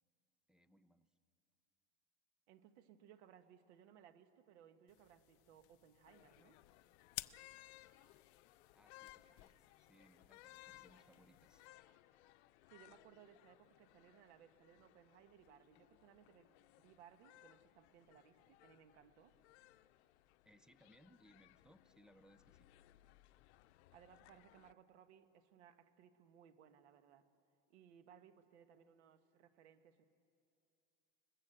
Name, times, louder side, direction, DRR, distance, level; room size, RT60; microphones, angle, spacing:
voice 1, 0.5-1.2 8.7-11.7 20.4-22.7, equal, ahead, 14 dB, 0.6 m, -68 dB
voice 2, 2.5-6.6 12.7-19.3 23.9-27.3 27.7-30.0, right 9 dB, 90° right, 10 dB, 1.4 m, -64 dB
sound 1, 4.9-11.7, left 19 dB, 45° left, 0.5 m, -56 dB
sound 2, 6.1-24.7, left 16 dB, 85° left, 0.8 m, -64 dB
21.5 x 21.0 x 8.0 m, 2.5 s
supercardioid pair, 135°, 33 cm